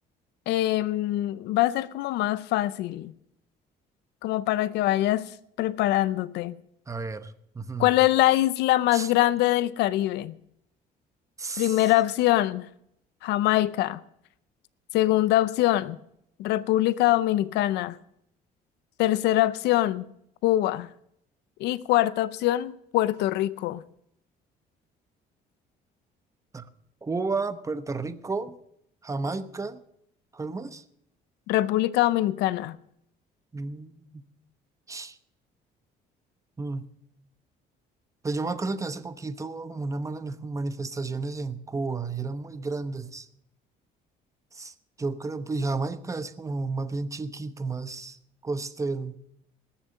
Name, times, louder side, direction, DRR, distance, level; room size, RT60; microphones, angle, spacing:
voice 1, 0.5-3.1 4.2-5.3 5.6-6.5 7.8-10.3 11.6-12.7 13.2-14.0 14.9-16.0 16.4-18.0 19.0-20.1 20.4-20.9 21.6-23.8 31.5-32.8, left 15 dB, 80° left, 0.6 m, -23 dB
voice 2, 6.9-7.9 8.9-9.1 11.4-11.9 26.5-26.7 27.0-28.6 29.0-29.8 30.3-30.8 33.5-34.0 34.9-35.2 36.6-36.9 38.2-43.3 44.5-48.2 48.4-49.2, right 3 dB, 20° right, 0.9 m, -32 dB
19.5 x 7.1 x 6.5 m
cardioid pair, 110°, 17 cm